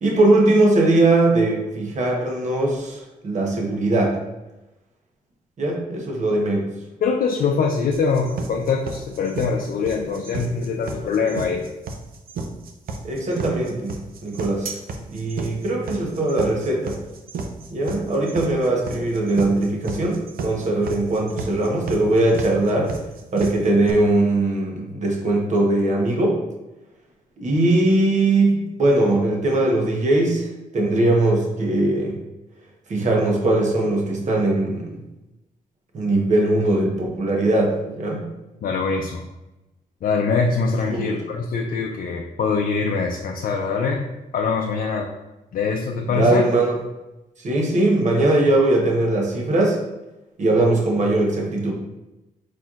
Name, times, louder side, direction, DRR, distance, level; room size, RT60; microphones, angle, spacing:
voice 1, 0.0-4.2 5.6-6.7 13.0-14.8 15.1-17.0 17.7-23.0 23.3-26.4 27.4-32.2 32.9-35.0 35.9-38.3 40.9-41.2 46.1-46.7 47.4-49.8 50.4-51.7, right 2 dB, 55° right, 0 dB, 1.0 m, -20 dB
voice 2, 7.0-11.7 38.6-39.3 40.0-44.1 44.3-45.1 45.5-46.4, left 5 dB, 70° left, 1 dB, 0.5 m, -23 dB
sound 1, 7.9-23.9, right 3 dB, 85° right, 0.6 m, -32 dB
4.3 x 4.3 x 2.5 m, 0.98 s
cardioid pair, 95°, 15 cm